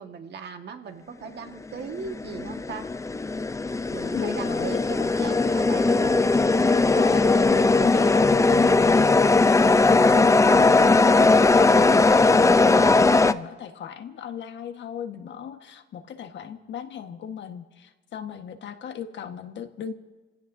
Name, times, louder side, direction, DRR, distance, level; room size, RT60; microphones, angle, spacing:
voice 1, 0.0-2.8 3.9-6.2, right 6 dB, 60° right, 5 dB, 1.7 m, -38 dB
sound 1, 1.8-13.3, left 3 dB, 15° left, 0.5 m, -19 dB
voice 2, 4.1-4.8 6.9-9.1 9.9-19.9, left 8 dB, 65° left, 7 dB, 1.4 m, -36 dB
30.0 x 16.5 x 2.7 m, 1.3 s
cardioid pair, 90°, 20 cm